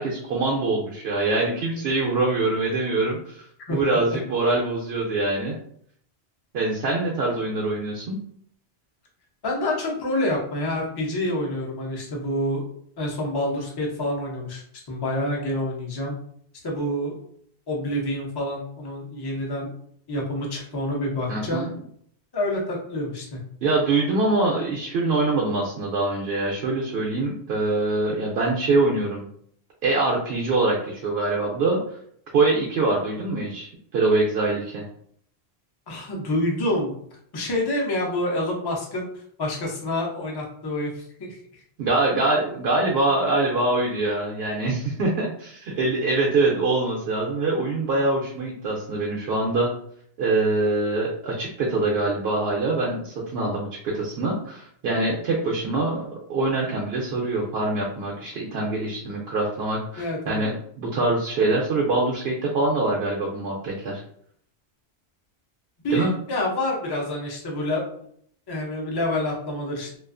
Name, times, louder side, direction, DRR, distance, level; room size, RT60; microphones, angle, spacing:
voice 1, 0.0-3.5 3.7-5.6 6.5-8.2 21.3-21.7 23.6-29.3 29.8-31.8 32.3-34.8 41.8-49.7 50.2-60.5 60.8-64.0 65.9-66.1, right 2 dB, 75° right, -3 dB, 0.8 m, -24 dB
voice 2, 9.4-12.6 13.0-16.2 16.6-17.2 17.7-19.7 20.1-21.7 22.3-23.4 35.9-37.0 37.3-41.6 60.0-60.4 65.8-67.8 68.5-70.0, left 1 dB, 30° left, -1 dB, 0.5 m, -27 dB
2.4 x 2.3 x 2.4 m, 0.64 s
omnidirectional pair, 1.1 m